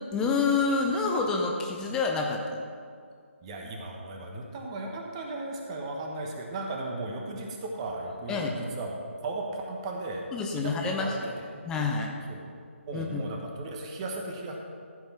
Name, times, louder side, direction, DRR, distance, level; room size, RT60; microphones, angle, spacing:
voice 1, 0.1-2.6 8.3-8.5 10.3-11.3 11.6-12.1 12.9-13.2, left 4 dB, 10° left, 1 dB, 0.6 m, -28 dB
voice 2, 3.4-10.3 10.6-11.2 12.3-12.5 12.9-14.6, right 2 dB, 25° right, 1 dB, 1.2 m, -36 dB
14.0 x 5.4 x 5.9 m, 2.2 s
figure-of-eight pair, 155°, 7 cm